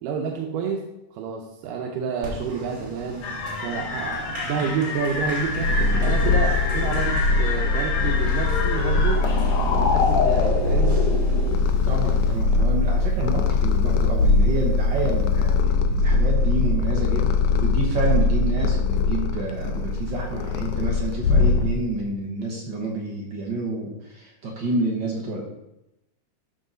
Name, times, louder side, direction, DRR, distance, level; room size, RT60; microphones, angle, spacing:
voice 1, 0.0-0.8 1.1-3.3 3.6-5.7 6.0-11.0, right 6 dB, 90° right, 1 dB, 2.4 m, -29 dB
Applause, 2.2-12.4, right 1 dB, 45° right, 2.7 m, -39 dB
sound 1, 3.2-11.6, left 4 dB, 65° left, 1.5 m, -28 dB
Purr, 5.2-22.0, left 3 dB, 80° left, 2.0 m, -21 dB
voice 2, 11.8-25.4, right 2 dB, 60° right, -1 dB, 1.2 m, -29 dB
12.0 x 4.7 x 3.8 m, 0.90 s
omnidirectional pair, 3.7 m